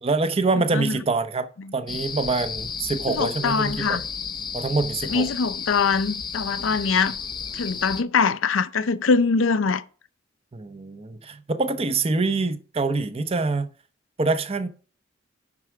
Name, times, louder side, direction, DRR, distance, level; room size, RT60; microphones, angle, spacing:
voice 1, 0.0-4.0 4.5-5.3 10.5-13.7 14.2-14.7, right 3 dB, 30° right, 0.6 m, -25 dB
sound 1, 1.9-8.0, left 6 dB, 20° left, 0.5 m, -33 dB
voice 2, 3.1-4.0 5.1-7.1 7.5-9.8, left 5 dB, 80° left, 0.6 m, -23 dB
9.6 x 6.0 x 4.6 m
head